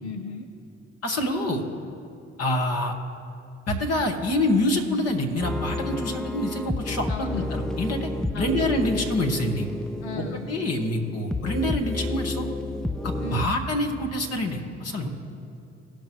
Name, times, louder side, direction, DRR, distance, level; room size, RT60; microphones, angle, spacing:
voice 1, 0.0-0.5 7.1-7.5 8.3-8.7 10.0-10.5 13.2-13.6, left 4 dB, 90° left, 6 dB, 0.5 m, -36 dB
voice 2, 1.0-1.6 2.4-2.9 3.7-8.1 8.3-9.7 10.1-12.5 13.0-15.1, left 1 dB, 50° left, 2 dB, 1.8 m, -26 dB
sound 1, 5.4-13.5, left 2 dB, ahead, 0.4 m, -30 dB
18.5 x 6.6 x 3.1 m, 2.8 s
hypercardioid pair, 50°, 32 cm